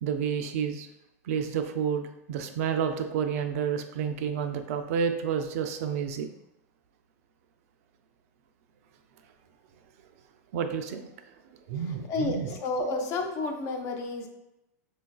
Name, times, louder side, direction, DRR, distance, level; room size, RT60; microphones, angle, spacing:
voice 1, 0.0-0.9 1.3-6.3 10.5-11.1 11.7-12.5, right 7 dB, 60° right, 7 dB, 0.3 m, -30 dB
voice 2, 11.7-14.3, left 3 dB, 35° left, 4 dB, 0.5 m, -31 dB
4.5 x 2.4 x 2.3 m, 0.89 s
supercardioid pair, 145°, 9 cm